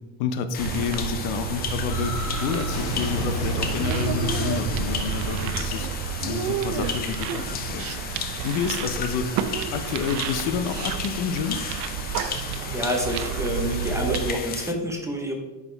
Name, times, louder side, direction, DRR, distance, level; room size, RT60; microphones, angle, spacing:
voice 1, 0.2-2.1 2.4-5.9 6.2-8.0 8.4-9.5 9.7-11.6, left 6 dB, 65° left, 9 dB, 0.7 m, -29 dB
sound 1, 0.5-14.7, left 7 dB, 25° left, 0.3 m, -35 dB
sound 2, 0.6-14.3, right 7 dB, 55° right, 0.6 m, -30 dB
sound 3, 1.9-7.6, left 1 dB, 45° left, 1.9 m, -34 dB
voice 2, 12.7-15.3, equal, 5° right, 1 dB, 0.8 m, -28 dB
8.3 x 5.0 x 3.3 m, 1.2 s
cardioid pair, 150°, 40 cm